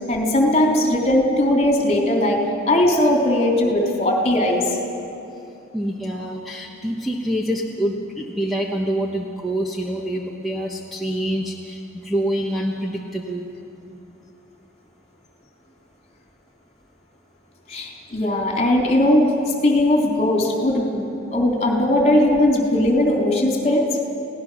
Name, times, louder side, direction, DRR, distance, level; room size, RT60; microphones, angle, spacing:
voice 1, 0.1-2.4 2.7-4.6 17.7-19.3 19.6-21.1 21.3-23.8, left 1 dB, 30° left, 0 dB, 3.4 m, -18 dB
voice 2, 5.7-13.5, right 1 dB, ahead, -3 dB, 1.2 m, -26 dB
29.5 x 17.5 x 6.3 m, 2.7 s
head